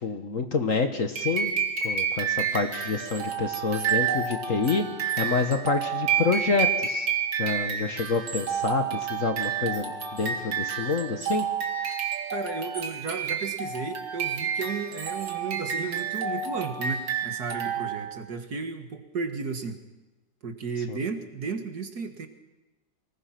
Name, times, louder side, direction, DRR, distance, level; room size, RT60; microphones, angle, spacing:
voice 1, 0.0-1.5 1.8-4.9 5.2-7.1 7.3-11.4 20.9-21.0, left 4 dB, 45° left, 7 dB, 1.5 m, -27 dB
sound 1, 1.2-18.2, right 7 dB, 75° right, 2.8 m, -29 dB
voice 2, 12.3-19.8 20.4-22.3, right 5 dB, 55° right, 6 dB, 2.2 m, -34 dB
24.5 x 20.0 x 5.9 m, 1.1 s
omnidirectional pair, 2.1 m